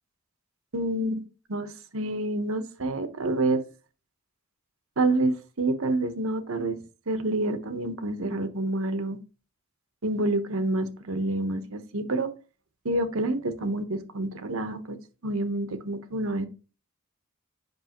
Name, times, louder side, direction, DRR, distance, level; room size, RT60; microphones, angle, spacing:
voice 1, 0.7-1.2 1.5-3.6 5.0-6.8 7.1-9.2 10.0-12.3 12.8-16.5, right 2 dB, 75° right, 10 dB, 1.1 m, -28 dB
8.1 x 6.1 x 3.0 m, 0.33 s
head